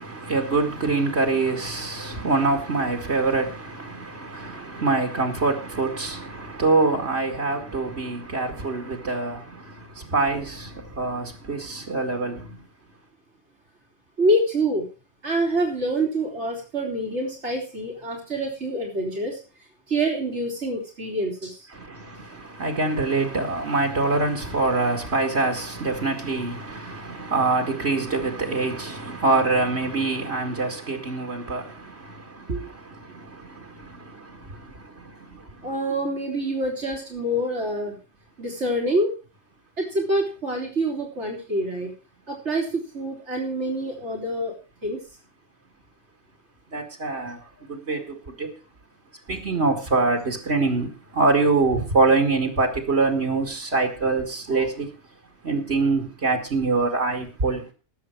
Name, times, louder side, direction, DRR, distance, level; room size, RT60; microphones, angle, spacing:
voice 1, 0.0-12.6 21.7-35.7 46.7-47.4 47.7-48.5 49.3-54.9 55.4-57.6, right 3 dB, 70° right, 2.5 m, -25 dB
voice 2, 14.2-14.9 15.2-19.4 19.9-21.7 35.6-38.0 38.4-39.1 39.8-41.9 42.3-44.5 44.8-45.0, right 1 dB, 85° right, 3.6 m, -26 dB
18.5 x 7.5 x 4.6 m
omnidirectional pair, 1.1 m